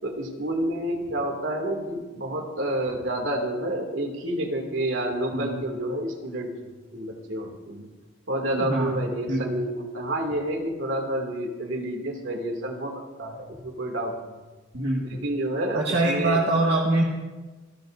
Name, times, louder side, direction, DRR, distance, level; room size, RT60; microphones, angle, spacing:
voice 1, 0.0-6.5 6.9-7.9 8.3-14.3 15.1-16.4, right 1 dB, 90° right, 2 dB, 2.6 m, -29 dB
voice 2, 8.5-9.0 9.3-9.5 14.7-15.1 15.7-17.0, right 2 dB, 60° right, -3 dB, 2.0 m, -24 dB
27.0 x 14.5 x 2.7 m, 1.3 s
head